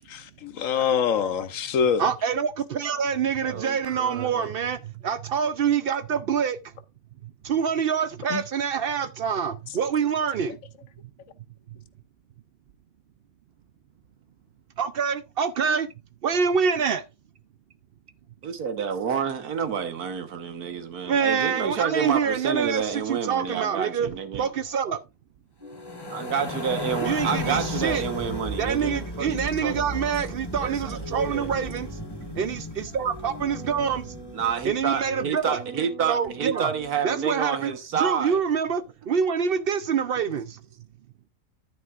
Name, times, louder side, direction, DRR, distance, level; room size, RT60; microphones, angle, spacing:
voice 1, 0.1-2.1 8.3-8.4, left 7 dB, 65° left, 1.2 m, -25 dB
voice 2, 0.8-1.1 3.4-4.5 18.4-24.5 26.1-30.1 30.5-31.5 34.3-38.4, right 7 dB, 90° right, 1.7 m, -29 dB
voice 3, 2.0-6.6 7.4-10.6 14.8-15.9 16.2-17.0 21.1-25.0 27.0-28.0 28.6-31.9 32.4-34.0 34.6-35.6 36.1-36.7 37.0-40.6, right 7 dB, 70° right, 0.5 m, -26 dB
sound 1, 25.6-37.3, equal, 15° right, 3.8 m, -45 dB
sound 2, 25.7-35.0, left 1 dB, 15° left, 1.2 m, -35 dB
10.5 x 9.3 x 2.4 m
omnidirectional pair, 1.6 m